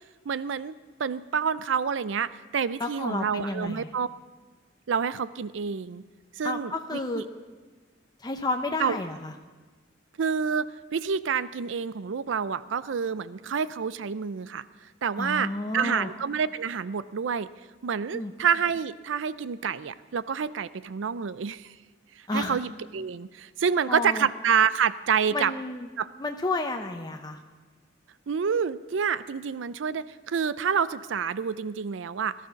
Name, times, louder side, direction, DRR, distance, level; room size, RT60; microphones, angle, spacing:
voice 1, 0.3-4.1 4.9-6.0 6.4-7.2 8.8-9.0 10.2-14.6 15.0-17.5 17.8-21.7 22.3-25.5 26.0-26.1 28.3-32.3, right 6 dB, 75° right, 16 dB, 0.5 m, -28 dB
voice 2, 2.8-3.9 6.4-7.3 8.2-9.3 15.2-16.1 18.1-18.3 22.3-22.6 23.9-24.3 25.3-25.9 26.2-27.4, left 2 dB, 20° left, 4 dB, 0.7 m, -31 dB
18.0 x 12.0 x 5.8 m, 1.3 s
head